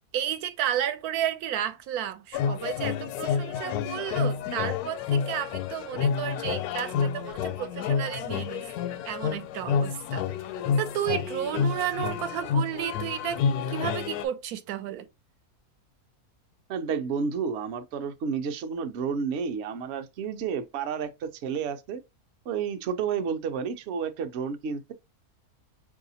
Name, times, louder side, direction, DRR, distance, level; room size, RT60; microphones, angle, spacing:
voice 1, 0.1-8.7 9.0-10.2 10.8-13.4 13.7-15.1, right 10 dB, 80° right, 1.1 m, -32 dB
sound 1, 2.3-14.3, left 6 dB, 80° left, 1.1 m, -29 dB
voice 2, 16.7-22.0 22.5-24.9, right 6 dB, 60° right, 0.7 m, -31 dB
4.7 x 2.7 x 2.7 m
omnidirectional pair, 1.6 m